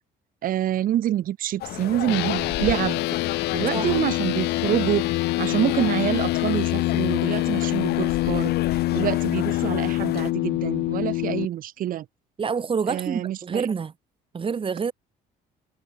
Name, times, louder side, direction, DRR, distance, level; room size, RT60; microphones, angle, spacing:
voice 1, 0.4-3.0 3.5-8.5 8.9-12.1 12.9-13.7, right 12 dB, 55° right, 0.8 m, -26 dB
sound 1, 1.6-10.3, left 14 dB, 70° left, 2.4 m, -34 dB
sound 2, 2.1-11.5, left 20 dB, 85° left, 2.0 m, -25 dB
voice 2, 3.7-4.0 12.4-13.9 14.3-14.9, right 6 dB, 30° right, 2.1 m, -27 dB
cardioid pair, 110°, 17 cm